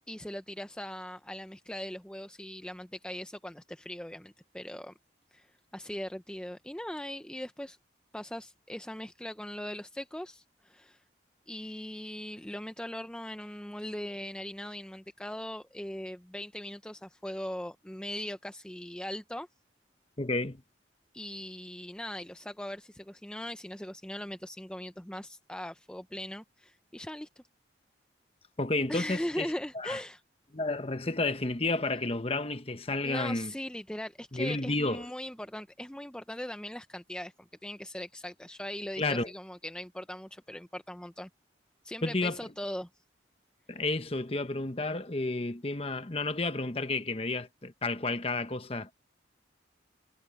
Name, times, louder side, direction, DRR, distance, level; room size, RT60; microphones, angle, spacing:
voice 1, 0.1-4.9 5.3-5.5 5.7-7.8 8.1-11.0 11.5-19.5 21.1-27.4 28.9-30.2 33.0-41.3 41.8-42.9, left 1 dB, 5° left, 0.5 m, -40 dB
voice 2, 20.2-20.6 28.6-30.0 30.5-33.5 34.3-35.0 39.0-39.3 42.0-42.4 43.7-48.9, left 2 dB, 30° left, 1.0 m, -31 dB
head